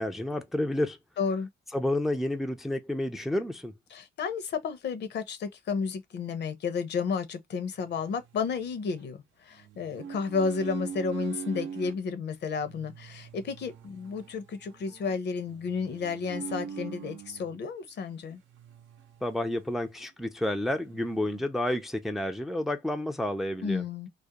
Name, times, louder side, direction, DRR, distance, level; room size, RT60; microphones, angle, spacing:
voice 1, 0.0-1.0 1.7-3.7 19.2-23.8, left 1 dB, ahead, 0.4 m, -30 dB
voice 2, 1.2-1.5 3.9-18.4 23.6-24.1, left 5 dB, 60° left, 0.6 m, -32 dB
sound 1, 7.8-9.1 9.6-12.0 12.6-17.6 18.5-19.7 20.0-20.1 20.4-21.4, right 7 dB, 75° right, 0.6 m, -42 dB
2.4 x 2.1 x 2.8 m
cardioid pair, 90°, 20 cm